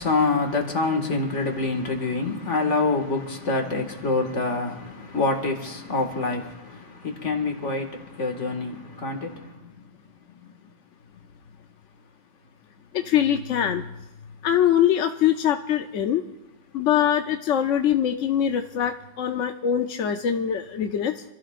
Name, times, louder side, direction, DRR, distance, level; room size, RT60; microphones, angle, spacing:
voice 1, 0.0-9.7 10.4-10.5, left 3 dB, 40° left, 2.1 m, -26 dB
voice 2, 12.9-13.8 14.4-16.2 16.7-21.2, left 9 dB, 60° left, 0.8 m, -23 dB
26.5 x 15.5 x 2.5 m
omnidirectional pair, 2.0 m